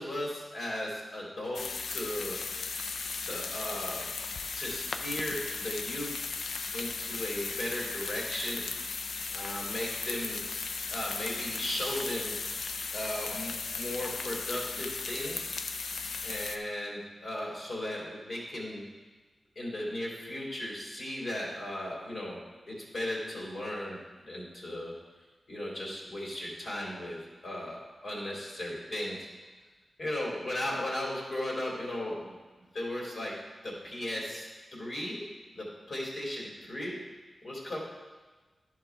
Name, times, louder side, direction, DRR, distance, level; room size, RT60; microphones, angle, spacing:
voice 1, 0.0-2.4 3.2-4.1 4.6-6.1 6.7-8.7 9.3-12.4 12.9-15.3 16.2-18.8 19.5-22.4 22.7-24.9 25.5-27.2 27.4-29.3 30.0-32.3 32.7-33.3 33.6-35.2 35.5-37.0 37.4-37.8, left 1 dB, 65° left, -4 dB, 3.0 m, -36 dB
sound 1, 1.5-16.6, left 4 dB, 85° left, 0.5 m, -36 dB
11.0 x 4.9 x 4.6 m, 1.3 s
cardioid pair, 55°, 0 cm